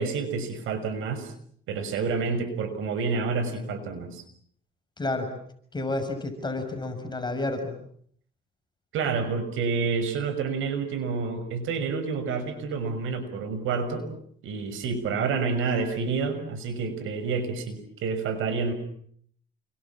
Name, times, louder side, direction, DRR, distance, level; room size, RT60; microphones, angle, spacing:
voice 1, 0.0-1.3 1.7-4.2 8.9-14.1 14.4-18.7, right 4 dB, 90° right, 9 dB, 6.2 m, -29 dB
voice 2, 5.0-5.3 5.7-7.7, left 2 dB, 20° left, 6 dB, 6.6 m, -30 dB
29.5 x 24.0 x 7.5 m, 0.64 s
cardioid pair, 90°, 20 cm